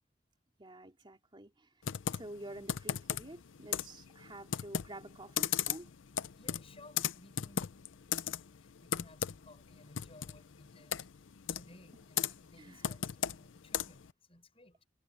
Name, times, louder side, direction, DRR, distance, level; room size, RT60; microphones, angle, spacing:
voice 1, 0.6-1.7 2.1-5.9 12.5-12.9, right 1 dB, 25° right, 2.8 m, -49 dB
Computer keyboard, 1.8-14.1, left 9 dB, 85° left, 0.6 m, -38 dB
voice 2, 6.3-8.0 8.6-11.0 11.5-14.8, left 1 dB, 30° left, 6.9 m, -59 dB
head